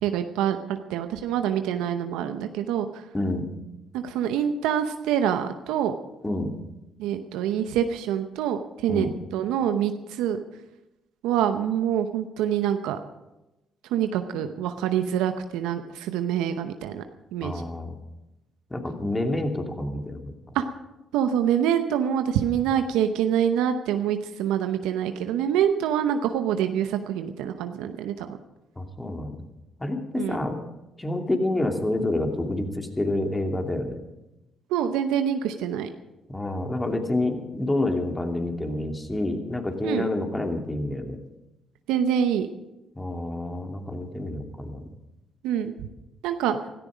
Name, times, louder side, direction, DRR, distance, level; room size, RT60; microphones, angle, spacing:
voice 1, 0.0-3.0 3.9-5.9 7.0-10.4 11.2-13.0 13.9-17.0 17.3-17.5 20.5-20.6 21.1-28.3 30.2-30.4 34.7-35.9 39.8-40.1 41.9-42.5 45.4-45.7 46.2-46.5, right 9 dB, 80° right, 8 dB, 0.8 m, -25 dB
voice 2, 3.1-3.5 6.2-6.5 8.9-9.1 17.4-17.9 18.7-20.3 28.8-29.4 29.8-30.6 31.0-34.0 36.3-41.2 43.0-44.8, left 1 dB, 15° left, 4 dB, 2.7 m, -28 dB
16.5 x 13.5 x 5.1 m, 0.97 s
supercardioid pair, 60°, 0 cm